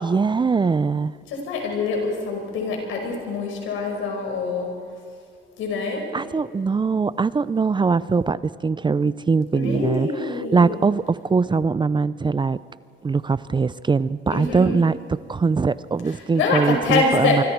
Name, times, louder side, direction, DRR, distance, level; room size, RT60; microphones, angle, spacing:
voice 1, 0.0-1.1 6.1-12.6 13.0-17.4, right 4 dB, 25° right, 17 dB, 0.5 m, -22 dB
voice 2, 1.3-4.7 5.6-6.1 9.6-10.8 14.3-14.8 16.1-17.5, left 3 dB, 85° left, 2 dB, 5.4 m, -25 dB
25.5 x 24.5 x 4.6 m, 2.2 s
cardioid pair, 90°, 20 cm